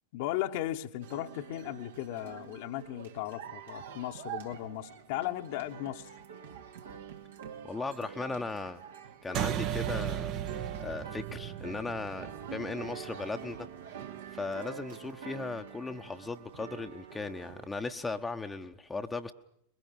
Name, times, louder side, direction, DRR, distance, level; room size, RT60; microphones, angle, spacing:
voice 1, 0.1-6.1, left 14 dB, 50° left, 6 dB, 1.3 m, -36 dB
sound 1, 1.0-17.7, right 8 dB, 60° right, 2.2 m, -46 dB
voice 2, 7.6-8.8 9.2-10.3 10.8-13.7 14.3-19.3, left 3 dB, 10° left, 5 dB, 1.1 m, -37 dB
sound 2, 9.3-14.2, right 10 dB, 40° right, 1.1 m, -36 dB
22.5 x 21.5 x 8.8 m, 0.71 s
figure-of-eight pair, 90°, 0 cm